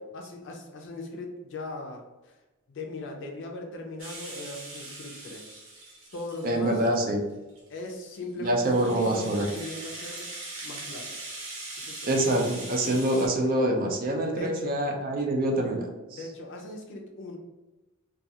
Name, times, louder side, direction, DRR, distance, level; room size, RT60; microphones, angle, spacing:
voice 1, 0.1-2.0 2.7-5.6 6.1-6.9 7.7-10.3 10.6-11.1 11.8-12.1 14.3-14.8 16.1-17.4, left 2 dB, 60° left, 2 dB, 0.5 m, -39 dB
Rattle (instrument), 4.0-7.0 7.6-13.3, right 2 dB, 65° right, 0.7 m, -41 dB
voice 2, 6.4-7.2 8.4-9.5 12.1-16.2, right 1 dB, 40° right, 2 dB, 0.4 m, -26 dB
2.4 x 2.3 x 2.7 m, 1.1 s
head